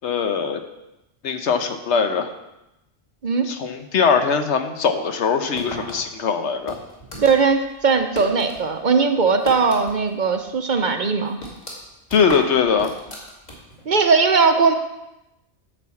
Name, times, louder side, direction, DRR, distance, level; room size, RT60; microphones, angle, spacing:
voice 1, 0.0-0.6 1.2-2.3 3.5-6.8 12.1-12.9, left 6 dB, 85° left, 7 dB, 1.1 m, -21 dB
sound 1, 5.5-8.6 8.9-10.2 10.5-10.6 11.0-13.8, equal, 40° left, 2.3 m, -36 dB
voice 2, 7.2-11.4 13.9-14.7, right 5 dB, 50° right, 6 dB, 0.8 m, -19 dB
10.5 x 4.4 x 7.0 m, 0.92 s
omnidirectional pair, 1.1 m